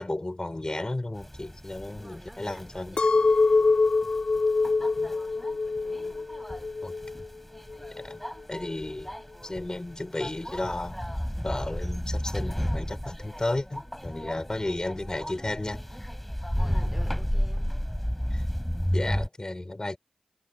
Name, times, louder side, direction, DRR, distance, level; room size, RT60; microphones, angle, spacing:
voice 1, 0.0-3.0 4.8-5.2 6.8-6.9 7.9-8.2 8.5-9.1 9.4-11.0 11.4-15.8 18.3-18.4 18.9-20.0, left 2 dB, 35° left, 5.1 m, -33 dB
sound 1, 1.2-19.3, equal, 5° left, 5.2 m, -33 dB
voice 2, 1.9-3.9 5.8-6.3 16.6-17.8, right 1 dB, 15° right, 4.6 m, -50 dB
Chink clink, 3.0-7.3 7.7-8.3, left 3 dB, 55° left, 0.7 m, -25 dB
cardioid pair, 40°, 2 cm